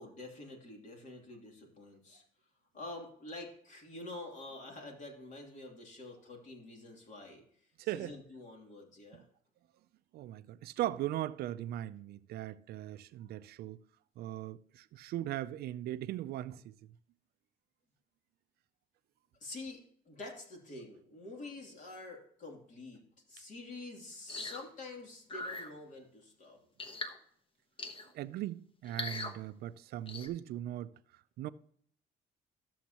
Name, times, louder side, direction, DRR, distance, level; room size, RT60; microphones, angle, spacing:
voice 1, 0.0-2.2 2.7-7.4 7.8-9.2 19.4-19.8 20.1-23.0 23.3-26.6, left 2 dB, 45° left, 2.8 m, -47 dB
voice 2, 7.8-8.1 9.1-9.2 10.1-13.8 14.2-16.7 28.1-30.9 31.4-31.5, right 13 dB, 70° right, 0.5 m, -39 dB
sound 1, 24.3-24.6 25.3-25.7 26.8-27.2 27.8-28.1 28.9-29.3 30.1-30.3, left 2 dB, 30° left, 1.2 m, -40 dB
13.0 x 7.2 x 2.9 m
cardioid pair, 110°, 17 cm